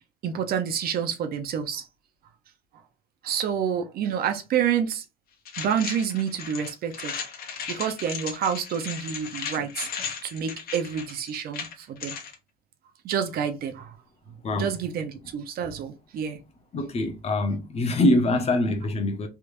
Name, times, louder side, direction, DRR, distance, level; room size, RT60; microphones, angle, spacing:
voice 1, 0.2-1.8 3.2-5.0 5.6-7.1 7.7-9.9 10.2-12.1 13.0-13.9 14.6-16.4, right 8 dB, 65° right, 0.7 m, -28 dB
sound 1, 5.5-12.3, left 6 dB, 60° left, 1.2 m, -36 dB
voice 2, 16.7-19.3, left 1 dB, 40° left, 0.8 m, -24 dB
3.4 x 3.1 x 2.5 m
cardioid pair, 110°, 17 cm